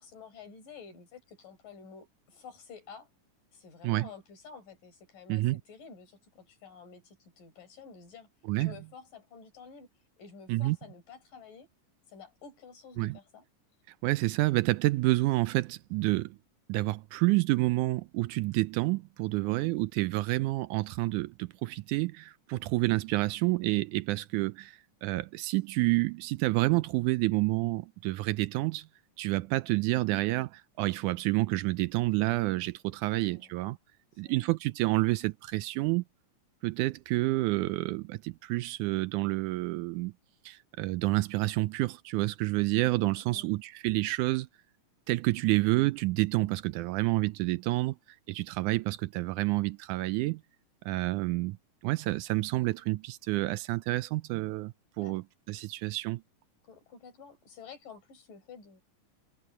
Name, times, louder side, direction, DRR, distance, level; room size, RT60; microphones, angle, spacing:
voice 1, 0.0-3.1 3.5-8.3 8.6-9.9 10.2-11.7 12.1-13.5 19.3-19.7 33.1-33.6 34.2-34.5 43.1-43.5 55.0-55.2 56.6-58.8, left 6 dB, 80° left, 6.6 m, -50 dB
voice 2, 5.3-5.6 8.5-8.7 10.5-10.8 13.0-13.2 14.0-16.4 16.7-28.9 29.2-33.8 34.2-36.0 36.6-40.1 40.5-44.5 45.1-48.0 48.3-50.4 50.9-51.6 51.8-56.2, right 20 dB, 80° right, 1.9 m, -29 dB
omnidirectional pair, 3.7 m